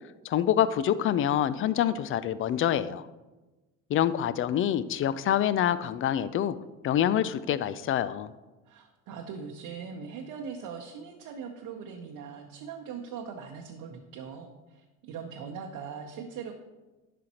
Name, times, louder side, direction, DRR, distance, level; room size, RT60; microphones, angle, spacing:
voice 1, 0.2-3.1 3.9-6.5 6.8-8.3, left 10 dB, 35° left, 15 dB, 0.4 m, -26 dB
voice 2, 8.7-16.5, right 6 dB, 55° right, 1 dB, 0.9 m, -41 dB
11.0 x 5.0 x 2.9 m, 1.1 s
hypercardioid pair, 65°, 40 cm